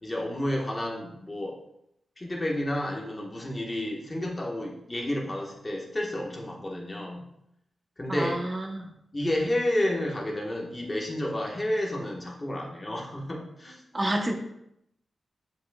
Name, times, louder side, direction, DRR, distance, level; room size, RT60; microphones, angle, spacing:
voice 1, 0.0-1.6 2.2-7.2 8.0-8.4 9.1-13.8, left 1 dB, 25° left, -1 dB, 1.3 m, -30 dB
voice 2, 8.1-8.9 13.9-14.4, right 1 dB, 25° right, 2 dB, 0.9 m, -29 dB
7.6 x 5.4 x 2.3 m, 0.78 s
wide cardioid pair, 110°, 0 cm